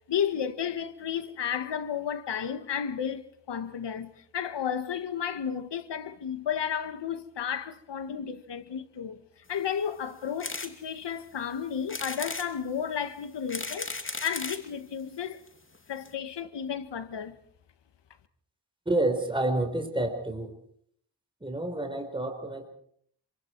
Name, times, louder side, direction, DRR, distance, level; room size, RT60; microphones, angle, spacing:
voice 1, 0.1-13.9 14.2-15.4 15.9-17.4, left 8 dB, 85° left, 1.6 m, -33 dB
sound 1, 10.4-10.7 11.2-11.3 11.9-12.5 13.2-14.7 15.5-15.6 15.7-15.8 16.0-16.1, left 3 dB, 30° left, 2.6 m, -35 dB
voice 2, 18.8-20.5 21.4-22.7, right 2 dB, 10° right, 4.4 m, -29 dB
27.0 x 24.5 x 4.6 m
cardioid pair, 70°, 41 cm